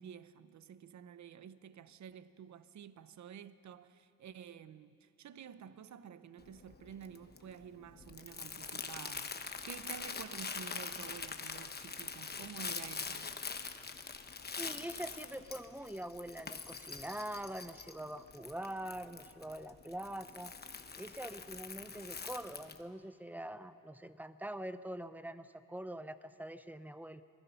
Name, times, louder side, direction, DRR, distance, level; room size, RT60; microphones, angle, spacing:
voice 1, 0.0-13.3, right 8 dB, 60° right, 0.8 m, -51 dB
Crumpling crinkling, 6.4-22.8, left 5 dB, 30° left, 1.0 m, -44 dB
voice 2, 14.6-20.5 21.0-27.2, right 1 dB, 5° right, 0.7 m, -44 dB
26.5 x 20.0 x 5.7 m
cardioid pair, 115°, 33 cm